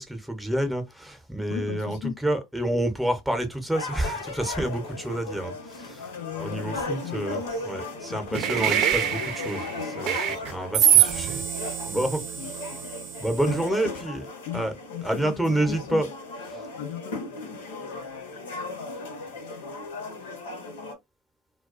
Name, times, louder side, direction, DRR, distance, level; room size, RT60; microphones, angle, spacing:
voice 1, 0.0-12.2 13.2-14.7 15.0-16.1 16.4-16.7, right 1 dB, 5° right, 0.8 m, -29 dB
voice 2, 1.5-2.2 6.0-7.3 7.8-8.5 11.9-12.0 12.4-12.9 14.5-16.0 16.8-17.3, left 10 dB, 65° left, 0.4 m, -37 dB
sound 1, 3.7-20.9, left 2 dB, 80° left, 0.9 m, -37 dB
sound 2, 8.3-13.6, right 10 dB, 50° right, 0.5 m, -25 dB
2.3 x 2.2 x 2.4 m
hypercardioid pair, 90°, 0 cm